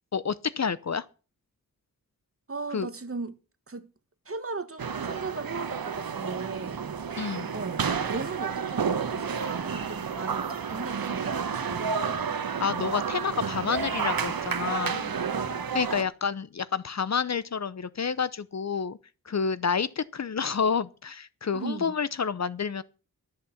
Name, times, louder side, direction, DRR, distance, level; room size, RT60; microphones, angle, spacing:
voice 1, 0.1-1.0 2.7-2.9 7.2-7.5 12.6-15.1 15.7-19.0 19.3-22.8, left 6 dB, 50° left, 0.7 m, -29 dB
voice 2, 2.5-3.4 3.7-3.9 4.2-6.8 7.5-7.8 8.1-12.2 15.3-15.8 21.5-21.9, right 3 dB, 40° right, 1.4 m, -37 dB
sound 1, 4.8-16.0, right 6 dB, 75° right, 1.3 m, -31 dB
13.0 x 6.7 x 7.1 m
wide cardioid pair, 65°, 35 cm